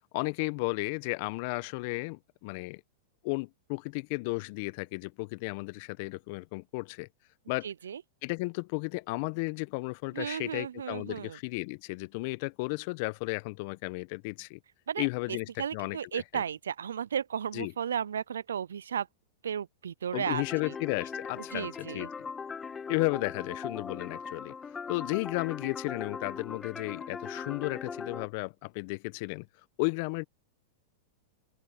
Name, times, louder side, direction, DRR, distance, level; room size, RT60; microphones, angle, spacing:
voice 1, 0.1-2.8 3.2-7.1 7.5-7.7 8.2-14.6 15.0-16.4 17.5-17.7 20.1-22.1 22.9-24.5 24.9-29.5 29.8-30.2, left 27 dB, 55° left, 1.1 m, -34 dB
voice 2, 7.6-8.0 10.1-11.4 14.9-19.1 19.4-20.7 21.5-22.1, right 8 dB, 80° right, 0.5 m, -34 dB
sound 1, 20.3-28.3, left 5 dB, 20° left, 1.5 m, -40 dB
open air
hypercardioid pair, 105°, 0 cm